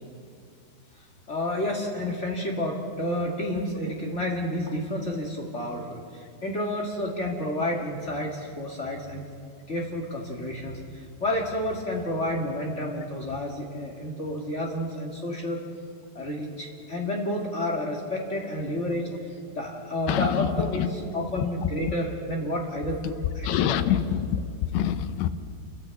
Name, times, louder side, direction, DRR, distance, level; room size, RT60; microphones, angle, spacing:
voice 1, 1.3-9.2 9.7-15.6 16.1-24.0, left 1 dB, 35° left, -1 dB, 1.2 m, -30 dB
voice 2, 20.1-20.5 20.7-20.9 23.4-24.4 24.7-25.3, left 10 dB, 80° left, 11 dB, 2.7 m, -25 dB
29.5 x 11.0 x 8.3 m, 2.2 s
omnidirectional pair, 4.7 m